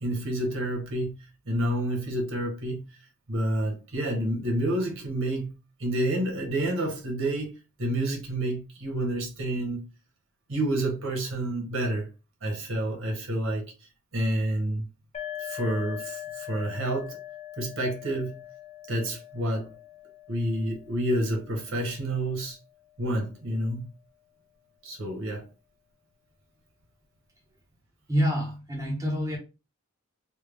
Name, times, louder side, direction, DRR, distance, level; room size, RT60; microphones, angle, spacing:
voice 1, 0.0-1.1 1.4-2.8 3.3-5.5 5.8-9.9 10.5-12.1 12.4-13.7 14.1-14.9 15.4-17.2 17.6-18.4 18.9-19.8 20.3-22.6 23.0-23.9 24.8-25.5, right 1 dB, 70° right, 1.1 m, -29 dB
sound 1, 15.1-22.6, left 12 dB, 30° left, 0.5 m, -42 dB
voice 2, 28.1-29.4, equal, 15° right, 0.7 m, -27 dB
3.4 x 2.2 x 3.4 m
head